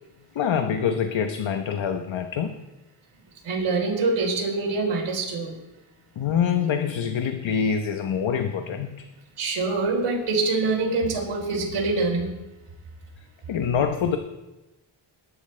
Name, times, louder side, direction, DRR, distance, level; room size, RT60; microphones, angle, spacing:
voice 1, 0.3-2.6 6.2-9.1 13.5-14.2, left 7 dB, 70° left, 6 dB, 1.1 m, -25 dB
voice 2, 3.4-5.5 9.4-12.3, right 3 dB, 90° right, -1 dB, 4.1 m, -25 dB
21.5 x 11.0 x 3.3 m, 1.0 s
wide cardioid pair, 115°, 49 cm